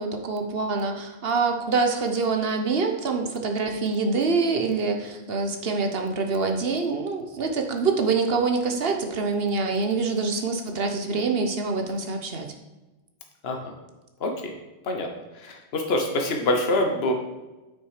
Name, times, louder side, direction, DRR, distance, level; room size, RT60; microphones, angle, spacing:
voice 1, 0.0-12.5, right 4 dB, 60° right, 4 dB, 1.1 m, -25 dB
voice 2, 14.2-14.5 14.9-15.1 15.4-17.1, left 1 dB, 65° left, 3 dB, 1.3 m, -25 dB
8.9 x 6.0 x 4.9 m, 1.1 s
omnidirectional pair, 1.1 m